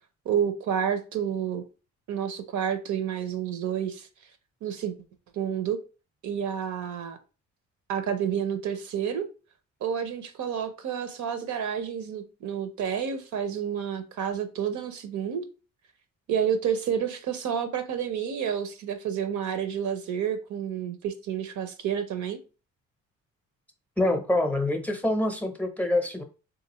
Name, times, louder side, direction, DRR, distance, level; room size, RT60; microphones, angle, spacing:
voice 1, 0.3-1.6 2.1-4.1 4.6-4.9 5.3-5.8 6.2-7.2 7.9-9.3 9.8-15.5 16.3-22.4, right 8 dB, 70° right, 0.7 m, -29 dB
voice 2, 24.0-26.2, left 1 dB, 5° left, 0.6 m, -25 dB
3.7 x 2.5 x 2.9 m
cardioid pair, 90°, 30 cm